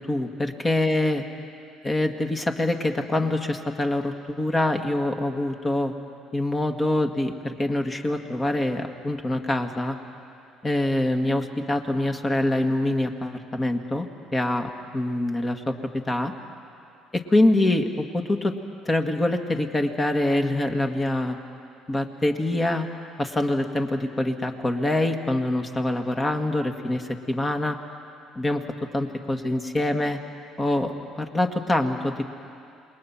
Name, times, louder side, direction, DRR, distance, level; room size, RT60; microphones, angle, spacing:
voice 1, 0.1-1.2 1.8-5.9 6.3-10.0 10.6-14.1 14.3-15.8 16.1-16.3 17.1-18.6 18.9-21.4 21.9-22.9 23.2-27.8 28.4-28.6 28.9-30.2 30.6-32.3, left 1 dB, 25° left, 5 dB, 2.0 m, -25 dB
28.0 x 20.5 x 6.0 m, 2.5 s
hypercardioid pair, 60°, 0 cm